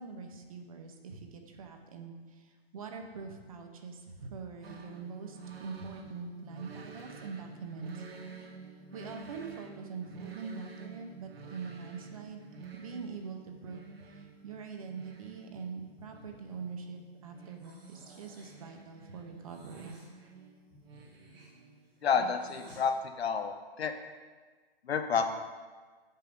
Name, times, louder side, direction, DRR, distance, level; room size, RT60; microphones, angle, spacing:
voice 1, 0.0-8.1 8.9-20.0, right 5 dB, 35° right, 4 dB, 0.8 m, -43 dB
sound 1, 4.6-22.4, right 4 dB, 70° right, 1.3 m, -50 dB
Breathing, 17.6-18.6 19.4-20.1 20.9-22.8, right 1 dB, 5° right, 0.5 m, -56 dB
voice 2, 22.0-23.9 24.9-25.4, left 6 dB, 90° left, 7 dB, 1.0 m, -30 dB
7.3 x 5.6 x 5.2 m, 1.4 s
hypercardioid pair, 170°, 31 cm